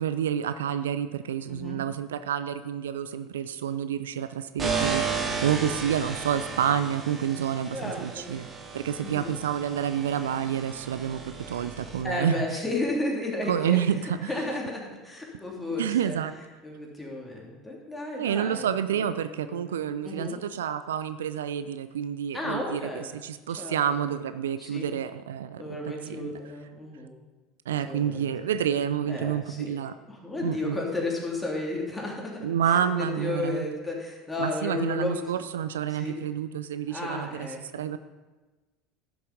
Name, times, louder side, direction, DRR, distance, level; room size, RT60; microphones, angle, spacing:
voice 1, 0.0-8.5 8.7-12.6 13.5-14.3 15.8-16.3 18.2-22.9 23.2-25.6 26.0-26.3 27.7-30.0 30.4-30.8 32.4-33.7 34.4-37.5 37.7-38.0, right 9 dB, 75° right, 12 dB, 0.4 m, -29 dB
voice 2, 1.5-1.8 7.7-8.3 9.0-9.3 12.0-13.8 14.2-16.2 16.6-19.6 20.0-20.4 22.3-23.1 23.6-24.1 24.6-24.9 25.6-27.1 27.8-28.5 29.0-29.7 30.1-35.2 35.9-36.2 36.9-37.9, left 2 dB, 15° left, -1 dB, 3.0 m, -33 dB
sound 1, 4.6-12.0, right 5 dB, 30° right, 2.3 m, -34 dB
12.0 x 7.0 x 5.3 m, 1.2 s
figure-of-eight pair, 70°, 0 cm